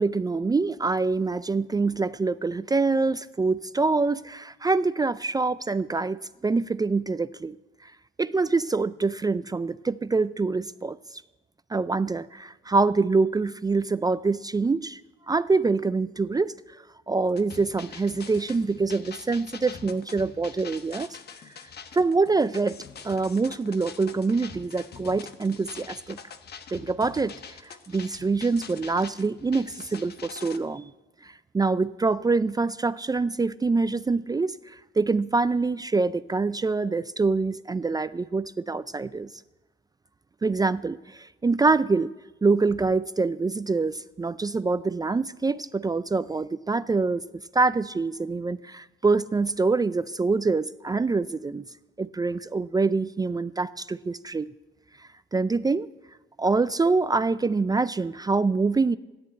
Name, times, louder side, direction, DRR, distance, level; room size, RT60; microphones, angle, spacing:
voice 1, 0.0-7.6 7.8-7.9 8.2-11.0 11.7-15.0 15.3-16.6 17.1-21.1 21.9-22.8 23.0-26.2 26.7-27.3 27.9-30.9 31.2-34.6 35.0-39.3 40.4-42.1 42.4-47.2 47.5-51.6 52.0-54.5 55.3-55.9 56.4-59.0, right 3 dB, 20° right, 15 dB, 0.4 m, -25 dB
sound 1, 17.3-30.6, left 6 dB, 55° left, 1.2 m, -44 dB
13.5 x 10.5 x 8.7 m, 1.1 s
cardioid pair, 90°, 20 cm